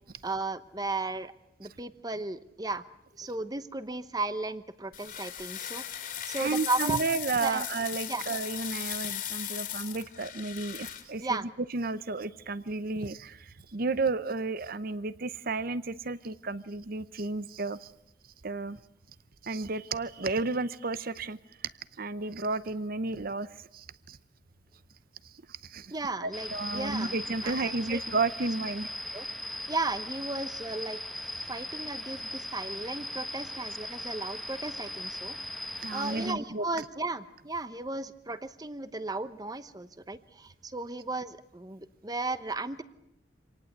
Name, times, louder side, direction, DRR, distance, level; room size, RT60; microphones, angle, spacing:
voice 1, 0.2-1.3 1.6-2.8 3.2-7.0 7.4-7.7 8.1-8.2 11.2-11.5 25.9-27.1 27.4-28.0 29.1-31.0 31.5-35.4 35.9-42.8, right 3 dB, 20° right, 13 dB, 0.9 m, -35 dB
sound 1, 4.9-11.0, left 10 dB, 50° left, 2.6 m, -37 dB
voice 2, 6.4-11.4 11.7-13.4 13.7-17.9 18.4-18.8 19.4-21.4 22.0-23.5 23.7-24.2 25.7-25.9 26.2-28.9 35.8-36.6, right 3 dB, 50° right, 16 dB, 0.8 m, -32 dB
sound 2, 26.3-36.3, left 1 dB, ahead, 1.2 m, -39 dB
26.0 x 18.5 x 8.1 m, 0.85 s
head